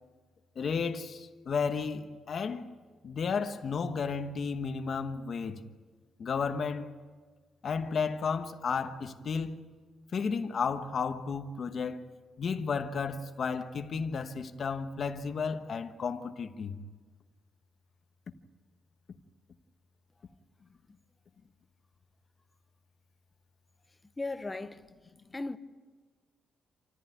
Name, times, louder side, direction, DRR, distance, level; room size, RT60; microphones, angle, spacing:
voice 1, 0.6-2.7 3.0-5.6 6.2-6.9 7.6-9.6 10.1-12.0 12.4-16.7, left 5 dB, 40° left, 1.2 m, -33 dB
voice 2, 24.2-24.9 25.3-25.6, left 2 dB, 10° left, 0.7 m, -36 dB
27.5 x 14.5 x 9.4 m
wide cardioid pair, 180°, 0 cm